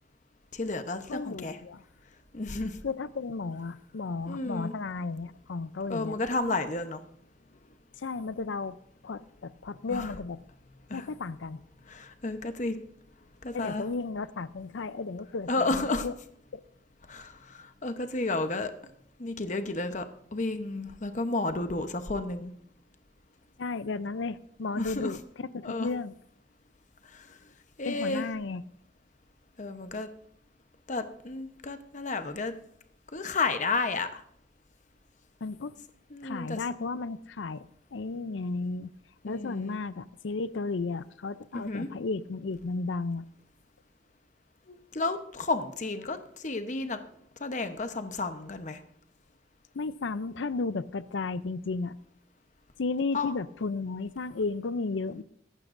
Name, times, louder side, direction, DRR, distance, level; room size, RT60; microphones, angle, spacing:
voice 1, 0.5-1.6 2.3-2.8 4.3-4.7 5.9-7.0 9.9-10.1 10.9-11.1 11.8-12.8 13.4-13.8 15.5-16.1 17.1-18.7 19.2-20.1 20.3-22.5 24.8-25.2 25.6-25.9 27.1-27.4 27.8-28.3 29.6-30.1 30.9-32.5 33.1-34.2 36.1-36.6 39.3-39.8 41.5-41.9 44.7-47.0 47.4-48.8 53.1-53.3, left 3 dB, 40° left, 0.9 m, -32 dB
voice 2, 1.1-1.8 2.8-6.2 8.0-8.8 9.0-10.4 10.9-11.6 13.5-16.1 16.5-16.6 23.6-26.1 27.8-28.6 35.4-35.7 36.2-37.7 37.9-38.9 39.2-43.3 49.7-52.0 52.8-55.2, left 3 dB, 80° left, 0.5 m, -34 dB
23.0 x 11.5 x 2.6 m
head